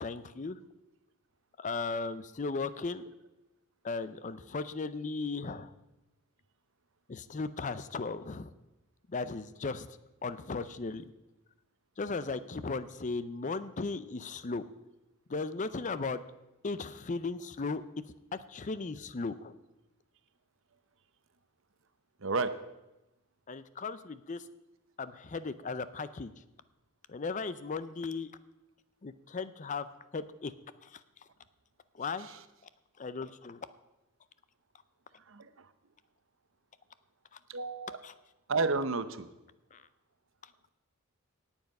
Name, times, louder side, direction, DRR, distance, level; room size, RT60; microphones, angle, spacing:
voice 1, 0.0-0.6 1.6-3.0 3.8-5.7 7.1-8.5 9.1-9.9 10.2-11.0 12.0-14.6 15.3-16.2 16.6-17.8 18.3-19.5 23.5-24.4 25.0-26.3 27.1-28.3 29.0-29.9 30.1-30.5 32.0-32.3 33.0-33.6 38.0-38.1 39.7-39.8, left 4 dB, 35° left, 14 dB, 0.5 m, -36 dB
voice 2, 22.2-22.5 32.2-32.4 35.3-35.7 37.5-38.0 38.5-39.3, right 3 dB, 60° right, 12 dB, 0.8 m, -32 dB
18.5 x 7.3 x 5.4 m, 0.97 s
head